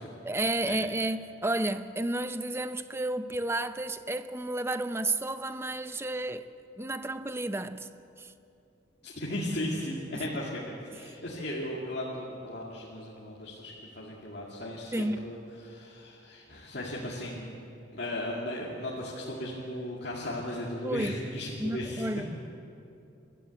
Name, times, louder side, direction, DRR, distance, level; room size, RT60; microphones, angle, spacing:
voice 1, 0.2-6.5 6.8-7.9 8.2-8.3 10.1-10.3 10.9-11.1 14.9-15.3 20.8-21.1 21.6-22.3, right 2 dB, 15° right, 0.6 m, -32 dB
voice 2, 9.0-15.4 15.6-17.6 17.9-22.2, left 1 dB, 55° left, 2.3 m, -36 dB
23.0 x 14.0 x 8.1 m
head